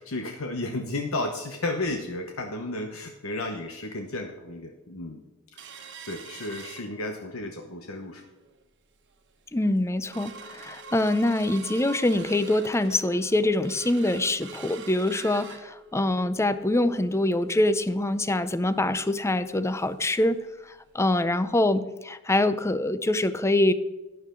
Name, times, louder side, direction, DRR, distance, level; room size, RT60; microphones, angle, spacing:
voice 1, 0.0-5.2 5.7-8.2, left 2 dB, 70° left, 5 dB, 1.0 m, -33 dB
sound 1, 5.6-7.4 7.8-7.9 8.3-8.6 9.1-9.2 9.6-20.1 20.4-20.5 20.9-21.1 21.6-21.7, right 4 dB, 55° right, 1.3 m, -45 dB
voice 2, 9.5-23.7, left 1 dB, 15° left, 14 dB, 0.5 m, -24 dB
12.0 x 11.0 x 3.8 m, 1.1 s
head